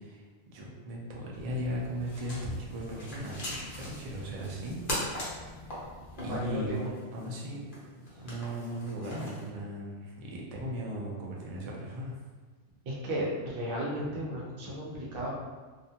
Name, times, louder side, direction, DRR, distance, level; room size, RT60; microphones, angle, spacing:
voice 1, 0.0-4.7 5.6-5.8 6.2-7.6 8.2-12.2, equal, 85° right, -2 dB, 0.3 m, -37 dB
sound 1, 1.3-6.8, left 1 dB, 20° left, 0.8 m, -49 dB
sound 2, 1.9-9.5, left 1 dB, 50° left, 0.9 m, -41 dB
voice 2, 6.1-6.9 8.1-8.4 12.8-15.3, equal, 55° right, -4 dB, 0.8 m, -35 dB
2.4 x 2.2 x 2.7 m, 1.4 s
omnidirectional pair, 1.2 m